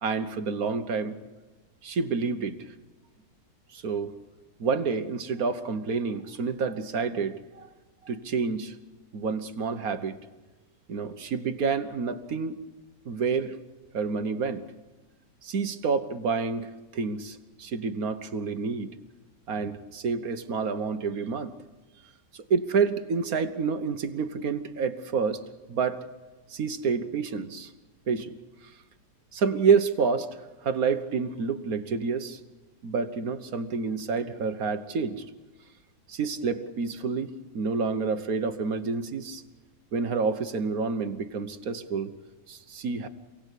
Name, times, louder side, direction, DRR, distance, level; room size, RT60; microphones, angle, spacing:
voice 1, 0.0-1.2 1.8-2.7 3.7-4.1 4.6-7.7 8.0-8.7 9.1-10.2 10.9-12.6 13.0-13.6 13.9-14.6 15.4-18.9 19.5-21.5 22.3-25.4 25.7-26.0 26.5-27.7 28.1-28.3 29.3-32.4 32.8-35.2 36.1-39.4 39.9-42.1 42.5-43.1, right 5 dB, 60° right, 9 dB, 1.6 m, -28 dB
28.0 x 18.0 x 8.4 m, 1.2 s
omnidirectional pair, 1.8 m